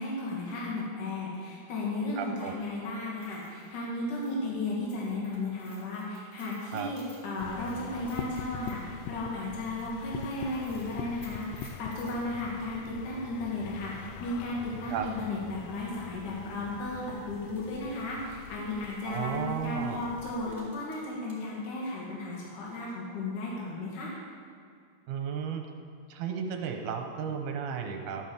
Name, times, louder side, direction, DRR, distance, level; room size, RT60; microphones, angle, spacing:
voice 1, 0.0-24.1, left 2 dB, 70° left, -5 dB, 3.7 m, -35 dB
voice 2, 2.2-2.5 6.7-6.9 14.9-15.1 19.1-20.1 25.1-25.6 26.1-28.3, right 7 dB, 70° right, 3 dB, 2.5 m, -34 dB
sound 1, 3.1-12.2 14.4-14.5 14.9-15.0 15.8-16.0 16.3-16.4 17.3-21.5 21.8-22.9, equal, 15° left, 3.3 m, -58 dB
sound 2, 7.4-20.6, left 7 dB, 90° left, 2.2 m, -44 dB
13.5 x 9.3 x 7.3 m, 2.4 s
omnidirectional pair, 3.7 m